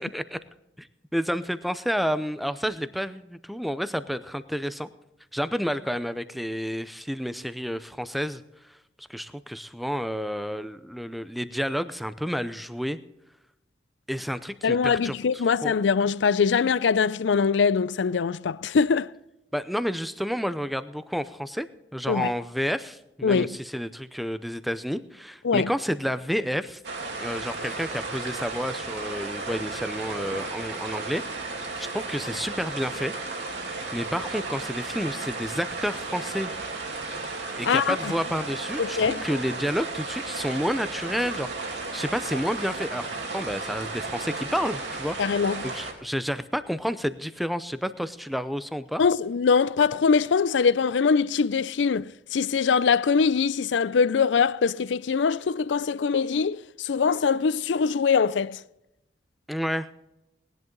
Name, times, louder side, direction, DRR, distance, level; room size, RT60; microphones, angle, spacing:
voice 1, 1.1-4.9 5.3-8.4 9.0-13.0 14.1-15.8 19.5-21.7 21.9-26.8 27.2-31.2 31.8-33.1 33.9-36.5 37.6-45.2 45.6-49.0 59.5-59.9, equal, ahead, 0.6 m, -30 dB
voice 2, 14.6-19.1 22.1-22.3 23.2-23.5 25.4-25.7 37.6-38.1 38.8-39.2 45.2-45.7 49.0-58.6, left 5 dB, 80° left, 0.4 m, -23 dB
sound 1, 26.8-45.9, right 3 dB, 70° right, 2.8 m, -34 dB
19.0 x 11.0 x 3.9 m
head